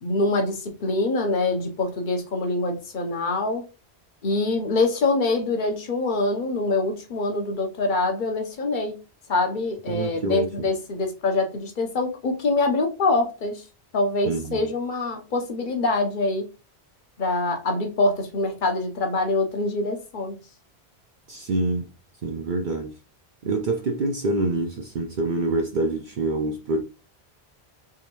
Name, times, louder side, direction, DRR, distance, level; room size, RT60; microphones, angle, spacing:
voice 1, 0.0-3.6 4.2-9.0 9.3-13.6 13.9-16.5 17.2-20.4, left 2 dB, 50° left, 0.9 m, -24 dB
voice 2, 9.9-10.7 14.2-14.6 21.3-21.9 22.2-22.9 23.4-26.8, right 2 dB, 55° right, 0.6 m, -26 dB
3.6 x 3.1 x 3.0 m
omnidirectional pair, 1.1 m